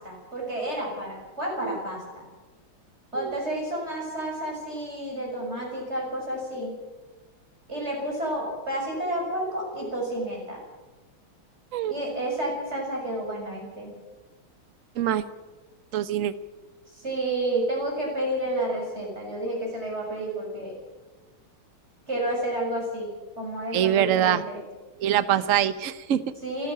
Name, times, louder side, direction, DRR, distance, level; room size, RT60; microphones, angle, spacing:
voice 1, 0.0-2.3 3.1-6.7 7.7-10.6 11.9-13.9 16.9-20.7 22.1-23.1 23.3-24.6 26.4-26.7, right 1 dB, 30° right, -1 dB, 7.0 m, -30 dB
voice 2, 15.9-16.3 23.7-24.4 25.0-26.2, right 10 dB, 50° right, 14 dB, 1.0 m, -24 dB
29.0 x 10.5 x 8.7 m, 1.2 s
omnidirectional pair, 2.3 m